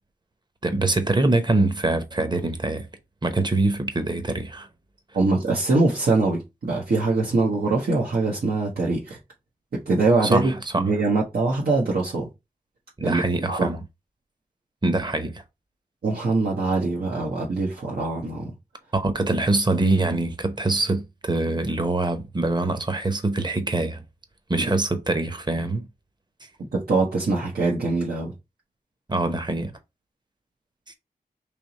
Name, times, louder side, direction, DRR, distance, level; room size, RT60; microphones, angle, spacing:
voice 1, 0.6-2.9 3.2-4.7 10.2-10.8 13.0-13.8 14.8-15.4 18.9-24.0 24.5-25.8 29.1-29.7, right 2 dB, 30° right, 0.9 m, -24 dB
voice 2, 5.1-9.2 9.7-12.3 13.0-13.7 16.0-18.5 24.6-24.7 26.7-28.3, right 3 dB, 70° right, 1.0 m, -23 dB
3.4 x 2.9 x 4.1 m
cardioid pair, 55°, 16 cm